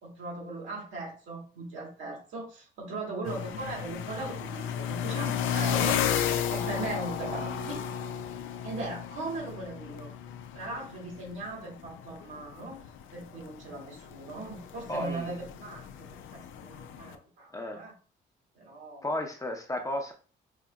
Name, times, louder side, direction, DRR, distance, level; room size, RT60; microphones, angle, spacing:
voice 1, 0.0-7.8 8.6-10.1 10.5-12.8 13.1-17.9 18.5-19.3, right 2 dB, 80° right, -3 dB, 2.1 m, -39 dB
sound 1, 3.2-17.2, left 9 dB, 80° left, 0.5 m, -34 dB
voice 2, 14.9-15.3 17.5-17.8 19.0-20.1, left 1 dB, 15° left, 3 dB, 0.8 m, -33 dB
5.1 x 2.7 x 2.3 m, 0.37 s
cardioid pair, 90°, 20 cm